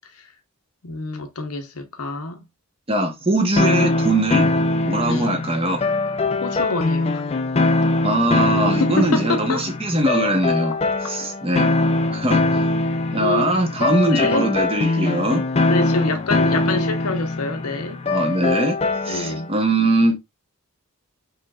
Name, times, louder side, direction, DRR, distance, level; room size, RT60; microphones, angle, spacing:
voice 1, 0.8-2.4 5.0-5.3 6.4-7.2 8.7-9.6 13.2-13.6 14.1-14.5 15.7-18.0 19.1-19.5, left 3 dB, 80° left, 0.9 m, -26 dB
voice 2, 2.9-4.5 4.8-5.8 8.0-10.8 11.1-11.7 12.1-12.4 13.1-15.4 18.0-18.8 19.0-20.1, right 1 dB, 25° right, 0.9 m, -21 dB
sound 1, 3.6-19.5, left 2 dB, 25° left, 0.4 m, -22 dB
5.0 x 3.1 x 2.3 m
head